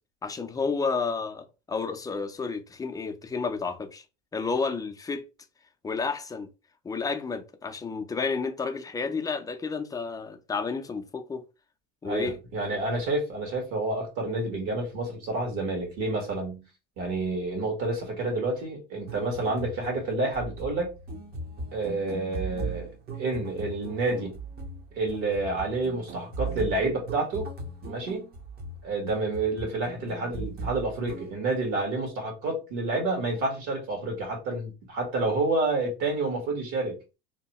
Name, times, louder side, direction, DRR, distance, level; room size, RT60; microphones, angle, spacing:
voice 1, 0.2-4.0 4.3-5.2 5.8-6.5 6.8-11.4 12.0-12.4, left 4 dB, 10° left, 0.3 m, -31 dB
voice 2, 12.0-16.6 17.0-20.9 21.7-22.9 23.2-24.4 24.9-27.5 27.8-28.3 28.8-37.0, right 2 dB, 70° right, 1.4 m, -29 dB
sound 1, 19.0-31.3, right 3 dB, 30° right, 0.6 m, -39 dB
2.8 x 2.2 x 2.8 m
supercardioid pair, 105°, 30 cm